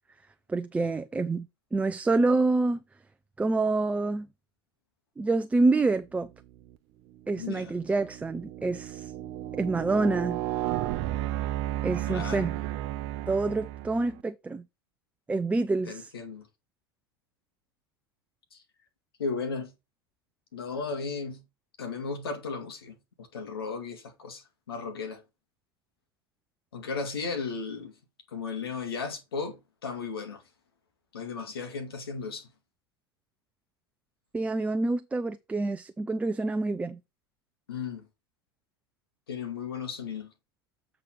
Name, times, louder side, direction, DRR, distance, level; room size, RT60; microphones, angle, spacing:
voice 1, 0.5-2.8 3.4-4.3 5.2-6.3 7.3-9.1 9.6-10.4 11.8-12.6 13.3-14.6 15.3-16.1 34.3-37.0, right 3 dB, 10° right, 0.5 m, -27 dB
sound 1, 6.4-6.8 7.3-14.2, right 14 dB, 55° right, 0.8 m, -33 dB
voice 2, 7.4-7.7 12.1-12.5 15.8-16.5 18.5-18.6 19.2-19.7 20.5-21.4 21.8-25.2 26.7-27.9 28.3-30.4 31.1-32.5 37.7-38.1 39.3-40.3, left 5 dB, 85° left, 2.1 m, -35 dB
8.2 x 4.0 x 5.3 m
hypercardioid pair, 95°, 12 cm